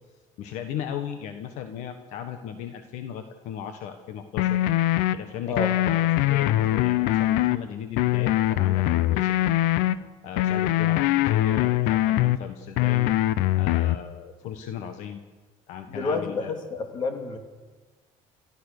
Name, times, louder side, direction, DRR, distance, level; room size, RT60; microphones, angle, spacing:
voice 1, 0.4-4.6 5.1-9.4 10.2-13.1 13.5-15.2 15.7-16.5, left 9 dB, 60° left, 8 dB, 1.5 m, -36 dB
sound 1, 4.4-5.1 5.6-7.6 8.0-9.9 10.4-12.4 12.8-14.0, left 15 dB, 85° left, 0.8 m, -22 dB
voice 2, 15.9-17.4, left 3 dB, 35° left, 6 dB, 2.6 m, -29 dB
29.5 x 14.5 x 6.8 m, 1.3 s
cardioid pair, 170°, 14 cm